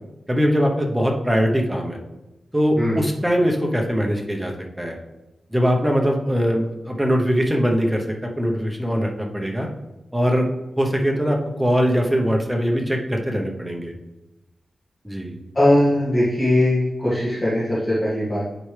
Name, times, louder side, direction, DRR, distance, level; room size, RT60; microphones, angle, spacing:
voice 1, 0.3-2.0 2.5-4.5 4.8-5.0 5.5-9.7 10.1-10.5 10.8-13.9 15.0-15.3, equal, 5° right, 1 dB, 0.9 m, -21 dB
voice 2, 15.5-18.5, left 1 dB, 20° left, -11 dB, 1.9 m, -20 dB
9.8 x 4.4 x 3.3 m, 1.0 s
wide cardioid pair, 145°, 0 cm